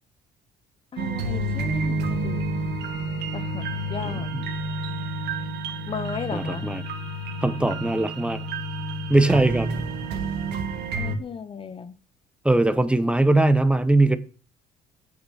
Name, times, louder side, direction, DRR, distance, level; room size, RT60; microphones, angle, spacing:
voice 1, 0.9-2.5 3.3-4.3 5.9-6.7 11.0-12.0, left 6 dB, 30° left, 0.6 m, -35 dB
sound 1, 1.0-11.1, right 2 dB, 80° right, 2.0 m, -29 dB
voice 2, 6.3-6.8 7.4-8.4 9.1-9.7 12.4-14.2, right 2 dB, 5° right, 0.8 m, -20 dB
8.8 x 6.7 x 5.6 m
cardioid pair, 110°, 17 cm